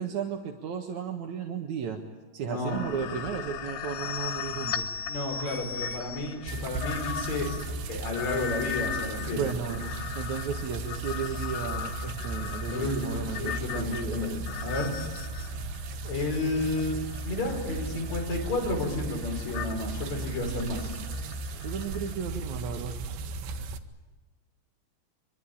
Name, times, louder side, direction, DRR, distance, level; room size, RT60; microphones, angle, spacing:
voice 1, 0.0-2.0 2.3-4.9 9.3-14.5 21.6-23.0, right 7 dB, 60° right, 2 dB, 2.2 m, -34 dB
voice 2, 2.4-2.9 5.1-7.5 7.9-9.5 12.7-14.9 16.0-17.0 17.2-20.9, left 2 dB, 40° left, 2 dB, 6.1 m, -31 dB
sound 1, 2.7-22.2, left 8 dB, 85° left, 3.6 m, -38 dB
sound 2, 6.5-23.8, right 3 dB, 85° right, 3.6 m, -36 dB
25.0 x 23.5 x 8.7 m, 1.2 s
omnidirectional pair, 5.2 m